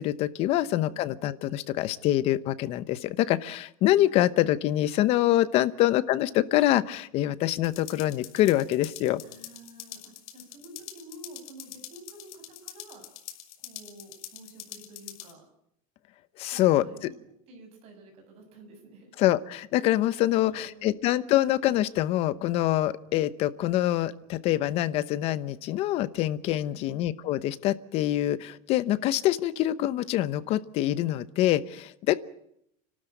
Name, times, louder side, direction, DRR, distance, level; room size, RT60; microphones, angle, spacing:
voice 1, 0.0-9.2 16.4-16.8 19.2-32.2, left 14 dB, 35° left, 16 dB, 0.9 m, -25 dB
voice 2, 0.5-1.1 9.2-13.1 13.6-15.4 16.5-17.1 17.5-19.1 20.3-21.0 26.7-27.0, right 2 dB, 35° right, 3 dB, 7.3 m, -50 dB
sound 1, 7.6-15.3, left 12 dB, 90° left, 3.5 m, -45 dB
29.5 x 13.0 x 9.1 m, 0.73 s
supercardioid pair, 175°, 18 cm